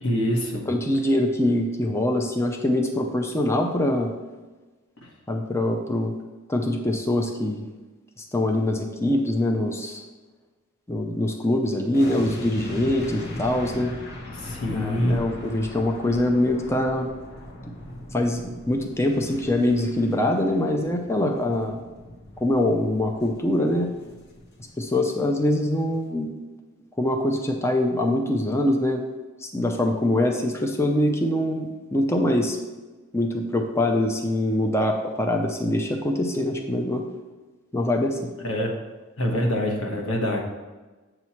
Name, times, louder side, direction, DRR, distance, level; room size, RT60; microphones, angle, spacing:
voice 1, 0.0-0.7 5.0-5.1 14.3-15.2 38.4-38.7 39.2-40.4, left 1 dB, 80° left, 1 dB, 1.2 m, -25 dB
voice 2, 0.7-4.1 5.3-6.1 6.5-7.7 8.3-10.0 10.9-13.9 14.7-17.1 18.1-21.8 22.4-23.9 24.8-26.3 27.0-29.0 29.4-32.6 33.1-37.0 37.7-38.3, left 1 dB, 15° left, 2 dB, 0.5 m, -24 dB
sound 1, 11.9-25.1 25.4-25.5, left 1 dB, 55° left, 1.2 m, -39 dB
7.8 x 3.1 x 5.6 m, 1.2 s
head